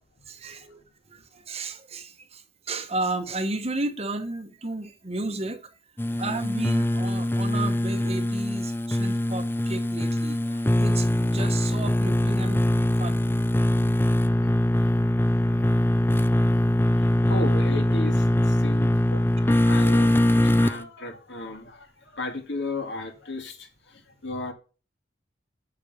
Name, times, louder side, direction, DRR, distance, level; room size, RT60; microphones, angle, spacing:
voice 1, 0.3-0.8 1.1-5.8 6.1-13.4 13.7-13.8 14.4-14.6 14.8-14.9 15.5-15.8, right 2 dB, 35° right, 1.2 m, -33 dB
sound 1, 6.0-20.8, left 1 dB, 10° left, 0.5 m, -22 dB
voice 2, 17.0-24.5, left 2 dB, 70° left, 2.3 m, -35 dB
7.9 x 6.3 x 6.9 m
head